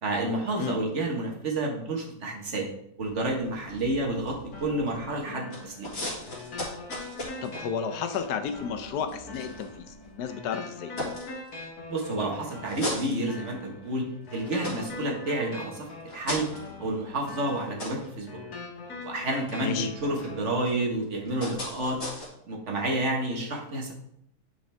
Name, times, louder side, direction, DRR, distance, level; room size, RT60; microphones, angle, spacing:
voice 1, 0.0-2.7 3.0-5.9 11.9-14.0 14.3-15.9 16.1-16.5 16.8-18.4 19.0-22.0 22.5-23.9, right 2 dB, 50° right, 0 dB, 1.5 m, -30 dB
sound 1, 3.0-5.2 5.5-10.2 10.7-11.9 12.4-13.8 14.2-22.3, left 1 dB, 45° left, 2.3 m, -40 dB
sound 2, 4.5-20.5, left 3 dB, 75° left, 1.8 m, -43 dB
voice 2, 7.4-10.9 19.6-19.9, left 7 dB, 90° left, 8 dB, 1.3 m, -32 dB
8.6 x 4.7 x 3.4 m, 0.74 s
omnidirectional pair, 1.6 m